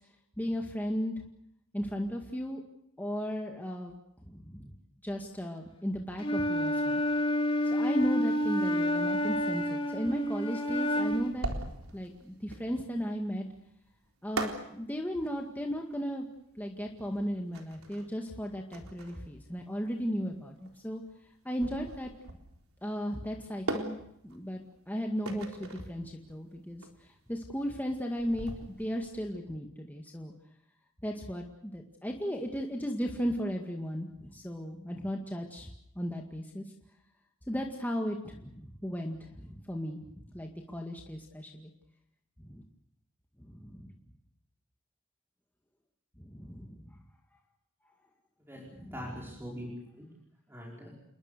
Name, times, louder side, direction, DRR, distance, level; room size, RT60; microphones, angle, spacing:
voice 1, 0.4-1.1 1.7-2.6 3.0-3.9 4.3-4.7 5.0-7.0 7.6-11.5 11.9-13.5 14.2-16.3 16.6-21.0 21.4-22.1 22.8-24.0 24.2-28.5 28.8-30.3 31.0-35.7 36.0-36.7 37.5-41.7 42.4-42.6 43.4-43.9 46.2-46.8 48.8-49.2, equal, 10° left, 1 dB, 2.0 m, -35 dB
Wind instrument woodwind instrument, 6.2-11.4, equal, 25° left, 3.0 m, -29 dB
sound 1, 11.0-29.3, right 2 dB, 85° right, 4.0 m, -42 dB
voice 2, 48.5-50.1 50.5-51.0, equal, 10° right, -3 dB, 5.2 m, -43 dB
29.0 x 22.0 x 6.8 m, 0.76 s
head